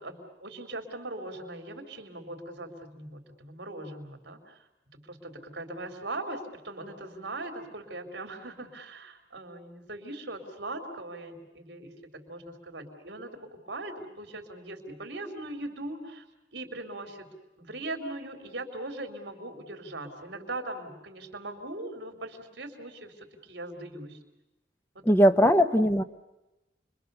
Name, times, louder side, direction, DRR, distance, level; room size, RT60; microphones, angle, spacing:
voice 1, 0.0-4.6 4.9-16.2 16.5-17.3 17.6-24.2 24.9-25.1, right 2 dB, 70° right, 5 dB, 3.6 m, -40 dB
voice 2, 25.1-26.0, equal, 15° left, 9 dB, 0.9 m, -20 dB
30.0 x 23.0 x 6.9 m, 0.98 s
head